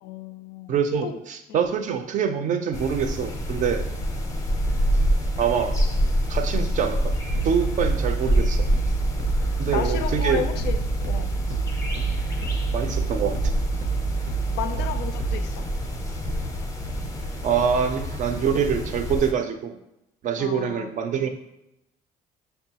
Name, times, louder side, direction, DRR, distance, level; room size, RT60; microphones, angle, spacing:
voice 1, 0.0-1.2 1.5-1.7 9.4-11.3 14.5-15.6 20.4-20.9, left 8 dB, 85° left, 8 dB, 0.4 m, -33 dB
voice 2, 0.7-3.9 5.4-5.7 6.3-7.1 7.4-8.7 9.6-10.4 12.7-13.4 17.4-19.8 20.2-21.3, right 7 dB, 50° right, 7 dB, 0.4 m, -25 dB
sound 1, 2.7-19.3, equal, 20° left, 0.5 m, -27 dB
sound 2, 7.2-15.4, right 5 dB, 90° right, 0.7 m, -28 dB
5.4 x 2.2 x 2.8 m, 0.87 s
cardioid pair, 110°, 17 cm